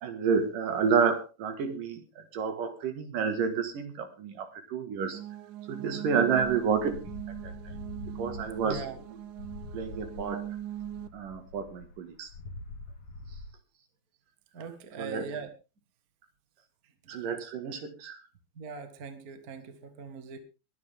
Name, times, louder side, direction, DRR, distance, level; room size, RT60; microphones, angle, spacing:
voice 1, 0.0-5.2 5.7-7.1 7.4-7.5 8.2-8.8 9.7-10.5 11.1-12.3 15.0-15.3 17.1-18.2, right 6 dB, 60° right, 7 dB, 3.3 m, -30 dB
sound 1, 5.1-11.1, right 12 dB, 85° right, 1.7 m, -40 dB
sound 2, 6.3-13.5, left 2 dB, 55° left, 3.6 m, -45 dB
voice 2, 8.6-9.0 14.5-15.5 18.5-20.4, right 5 dB, 40° right, 8 dB, 1.3 m, -41 dB
22.0 x 9.2 x 3.7 m, 0.31 s
omnidirectional pair, 4.5 m